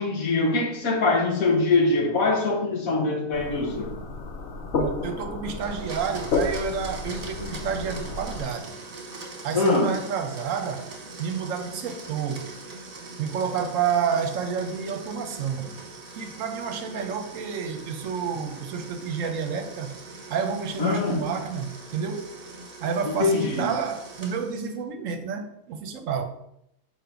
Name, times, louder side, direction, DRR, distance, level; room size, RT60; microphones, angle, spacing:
voice 1, 0.0-4.0 9.5-9.9 20.8-21.2 23.2-23.7, left 3 dB, 75° left, 0 dB, 1.6 m, -23 dB
sound 1, 3.3-8.4, left 3 dB, 60° left, 1.0 m, -31 dB
voice 2, 4.8-8.7 9.4-10.9 11.2-12.6 13.2-15.7 16.1-20.0 20.3-22.3 22.8-26.2, right 6 dB, 70° right, 7 dB, 1.0 m, -29 dB
Domestic sounds home sounds, 5.6-24.8, right 3 dB, 45° right, 1.3 m, -42 dB
4.7 x 3.9 x 5.7 m, 0.78 s
omnidirectional pair, 1.5 m